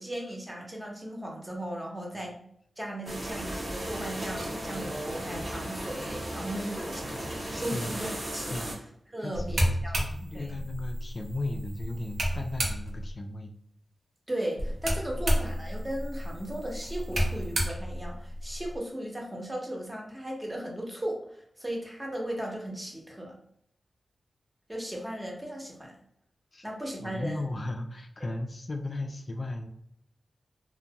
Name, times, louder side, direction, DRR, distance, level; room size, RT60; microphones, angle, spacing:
voice 1, 0.0-2.4 2.8-7.2 7.5-8.7 9.1-10.1 10.3-10.6 14.3-23.3 24.7-26.0 26.6-27.4, right 1 dB, 15° right, -1 dB, 0.8 m, -36 dB
sound 1, 3.1-8.8, right 1 dB, 50° right, 0.8 m, -36 dB
voice 2, 9.2-13.5 26.5-26.6 27.0-29.7, left 2 dB, 45° left, 3 dB, 0.3 m, -36 dB
sound 2, 9.3-13.1 14.6-18.8, equal, 85° right, 0.6 m, -31 dB
2.6 x 2.1 x 2.7 m, 0.71 s
cardioid pair, 65°, 0 cm